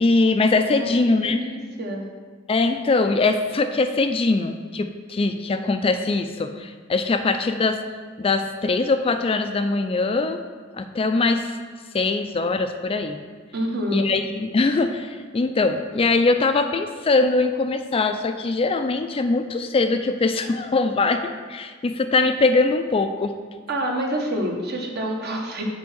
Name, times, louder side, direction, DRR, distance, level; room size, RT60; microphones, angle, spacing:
voice 1, 0.0-1.4 2.5-7.8 8.2-10.4 10.8-11.6 11.9-13.2 13.9-23.3, left 3 dB, 30° left, 7 dB, 0.4 m, -22 dB
voice 2, 0.6-2.1 13.5-14.1 23.7-25.6, right 1 dB, 55° right, 1 dB, 1.1 m, -28 dB
6.9 x 4.5 x 6.3 m, 1.5 s
head